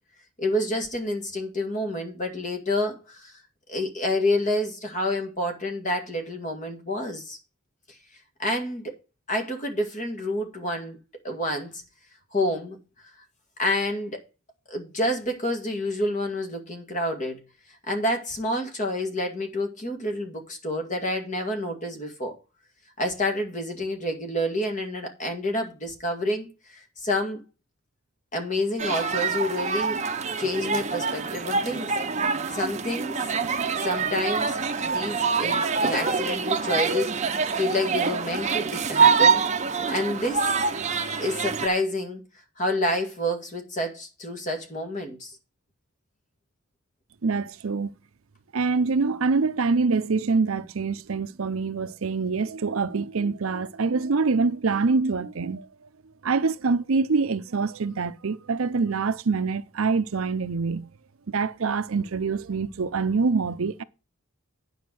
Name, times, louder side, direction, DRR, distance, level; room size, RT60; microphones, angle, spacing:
voice 1, 0.4-3.3 3.7-7.4 8.4-8.9 9.3-11.0 11.2-11.8 12.3-12.8 13.6-14.2 14.7-17.4 17.9-22.3 23.0-27.4 28.3-30.0 30.4-31.9 32.5-33.2 33.8-39.4 39.9-40.5 41.2-42.2 42.6-45.4, left 1 dB, 35° left, 2.1 m, -28 dB
sound 1, 28.8-41.7, right 5 dB, 35° right, 0.7 m, -25 dB
voice 2, 47.2-47.9 48.5-55.6 56.2-60.9 61.3-63.8, right 4 dB, 75° right, 0.6 m, -25 dB
9.4 x 5.6 x 6.2 m
head